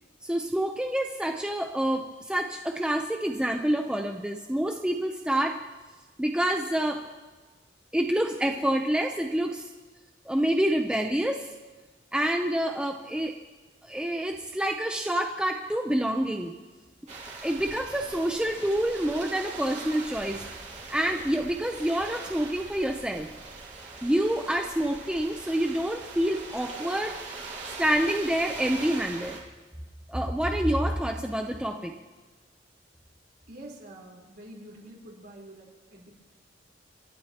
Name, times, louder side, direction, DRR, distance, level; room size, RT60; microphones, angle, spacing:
voice 1, 0.2-5.6 6.2-7.0 7.9-9.7 10.3-11.4 12.1-13.3 13.8-16.5 17.4-20.4 20.9-23.3 24.0-27.1 27.8-29.4 30.1-31.9, right 1 dB, 5° right, 3 dB, 0.7 m, -27 dB
sound 1, 17.1-29.4, right 3 dB, 40° right, 2.6 m, -41 dB
voice 2, 33.5-36.2, right 1 dB, 55° right, -2 dB, 4.1 m, -47 dB
29.0 x 12.0 x 3.0 m, 1.3 s
head